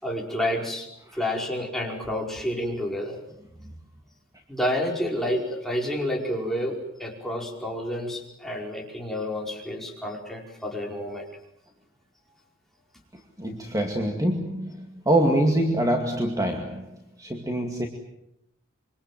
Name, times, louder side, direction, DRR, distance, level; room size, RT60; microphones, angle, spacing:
voice 1, 0.0-3.2 4.5-11.3, left 1 dB, ahead, -1 dB, 5.1 m, -29 dB
voice 2, 13.4-17.9, right 1 dB, 15° right, 3 dB, 2.3 m, -25 dB
26.5 x 25.0 x 7.7 m, 0.81 s
head